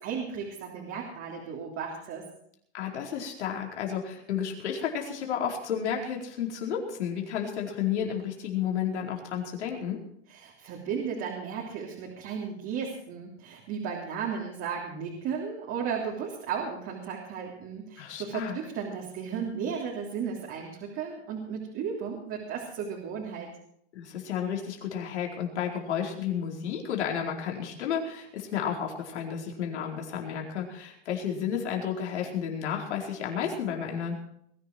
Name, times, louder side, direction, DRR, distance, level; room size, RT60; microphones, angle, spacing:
voice 1, 0.0-2.2 10.3-23.5, right 6 dB, 40° right, -2 dB, 3.2 m, -35 dB
voice 2, 2.7-10.0 18.0-18.6 23.9-34.2, left 8 dB, 85° left, 0 dB, 4.5 m, -32 dB
21.5 x 11.0 x 4.7 m, 0.69 s
supercardioid pair, 135°, 33 cm